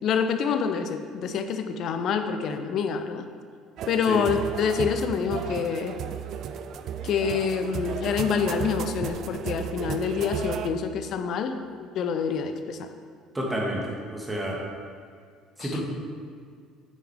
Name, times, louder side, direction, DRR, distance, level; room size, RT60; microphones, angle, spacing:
voice 1, 0.0-3.3 3.9-6.0 7.0-12.9 15.6-15.8, left 6 dB, 50° left, 8 dB, 0.5 m, -27 dB
sound 1, 3.8-10.7, right 8 dB, 50° right, 0.4 m, -34 dB
voice 2, 13.3-14.6 15.6-15.8, right 1 dB, 15° right, -2 dB, 1.8 m, -30 dB
7.5 x 6.7 x 3.6 m, 2.2 s
figure-of-eight pair, 55°, 0 cm